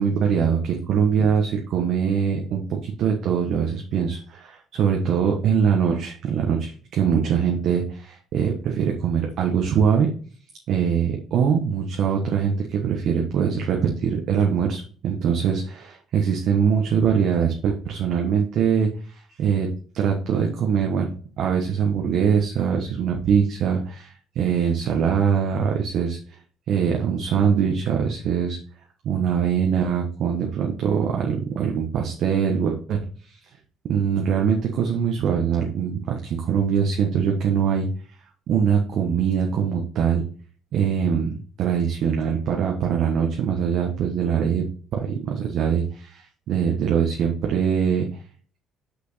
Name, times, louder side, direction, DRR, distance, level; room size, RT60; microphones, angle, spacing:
voice 1, 0.0-10.1 10.7-19.7 19.9-26.2 26.7-28.6 29.0-33.4 33.9-37.9 38.5-40.2 40.7-44.6 44.9-48.1, right 7 dB, 65° right, 1 dB, 1.2 m, -23 dB
6.1 x 5.8 x 4.1 m, 0.43 s
supercardioid pair, 65°, 0 cm